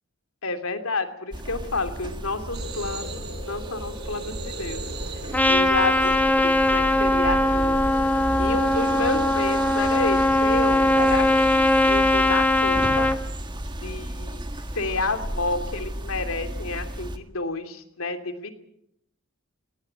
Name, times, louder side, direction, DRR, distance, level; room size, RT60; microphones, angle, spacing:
voice 1, 0.4-4.8 5.5-7.8 8.4-13.1 13.8-14.5 14.7-18.5, left 3 dB, 80° left, 8 dB, 2.8 m, -30 dB
sound 1, 1.3-17.2, right 1 dB, 20° right, 1.6 m, -34 dB
sound 2, 2.5-11.5, right 1 dB, 50° right, 3.9 m, -37 dB
Trumpet, 5.3-13.2, left 1 dB, 5° left, 1.3 m, -20 dB
19.5 x 18.0 x 9.0 m, 0.77 s
head